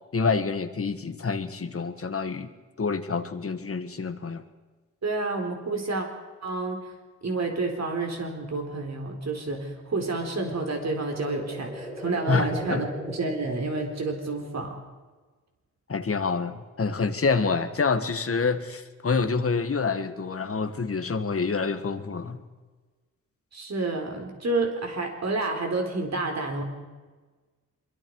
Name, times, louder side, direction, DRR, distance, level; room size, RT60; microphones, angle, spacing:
voice 1, 0.1-2.5 2.8-4.4 12.3-12.8 15.9-22.4, left 4 dB, 45° left, 9 dB, 1.6 m, -27 dB
voice 2, 5.0-6.1 6.4-6.8 7.2-14.8 23.5-26.6, right 3 dB, 60° right, 3 dB, 4.0 m, -29 dB
sound 1, 10.7-14.6, equal, 5° right, 5.0 m, -40 dB
25.0 x 23.5 x 4.8 m, 1.3 s
wide cardioid pair, 140°, 31 cm